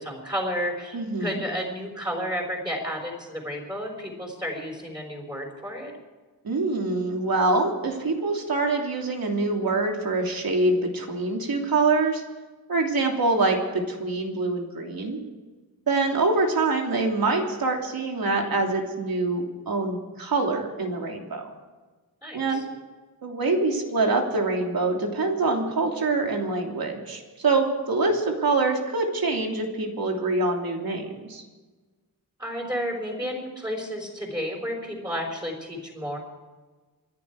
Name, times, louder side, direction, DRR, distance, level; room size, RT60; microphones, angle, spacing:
voice 1, 0.0-5.9 22.2-22.6 32.4-36.2, equal, 10° right, -1 dB, 5.0 m, -32 dB
voice 2, 0.9-1.4 6.4-12.2 12.7-15.2 15.9-21.5 22.3-22.6 23.2-31.4, right 3 dB, 70° right, 2 dB, 3.1 m, -25 dB
27.5 x 11.0 x 4.8 m, 1.3 s
wide cardioid pair, 105°, 37 cm